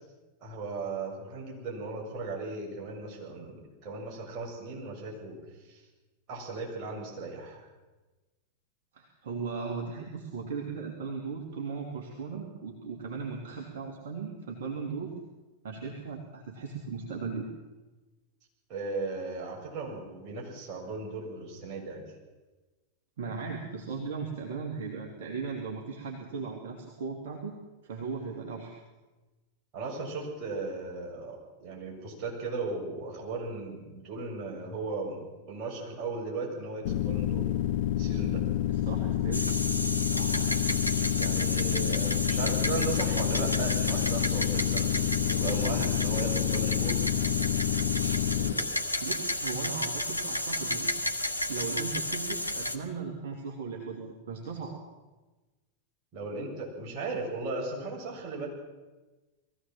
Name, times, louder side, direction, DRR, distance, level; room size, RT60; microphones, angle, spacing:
voice 1, 0.4-5.4 5.7-5.8 6.3-7.7 18.7-22.0 29.7-35.2 35.5-37.5 38.0-38.4 41.1-47.0 48.4-48.7 56.1-58.5, right 3 dB, 40° right, -2 dB, 7.4 m, -37 dB
voice 2, 8.9-15.2 15.6-17.5 23.2-27.6 27.8-28.7 38.7-39.5 40.0-40.6 48.7-50.9 51.5-54.8, right 5 dB, 55° right, 0 dB, 2.8 m, -37 dB
sound 1, 36.8-48.5, left 12 dB, 55° left, 1.1 m, -28 dB
sound 2, 39.3-52.8, left 1 dB, 80° left, 1.4 m, -32 dB
21.5 x 15.5 x 7.6 m, 1.2 s
figure-of-eight pair, 90°, 0 cm